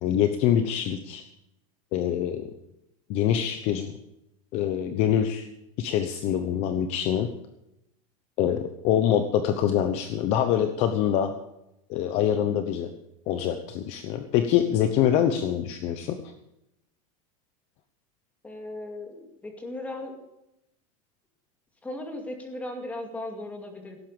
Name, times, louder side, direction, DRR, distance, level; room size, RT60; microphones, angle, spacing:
voice 1, 0.0-1.2 1.9-2.5 3.1-4.0 4.5-5.5 5.8-7.3 8.4-11.3 11.9-12.9 13.3-16.2, left 10 dB, 35° left, 8 dB, 1.0 m, -25 dB
voice 2, 18.4-20.2 21.8-24.0, left 1 dB, 10° left, 3 dB, 2.3 m, -37 dB
17.0 x 9.4 x 7.0 m, 0.85 s
supercardioid pair, 170°, 18 cm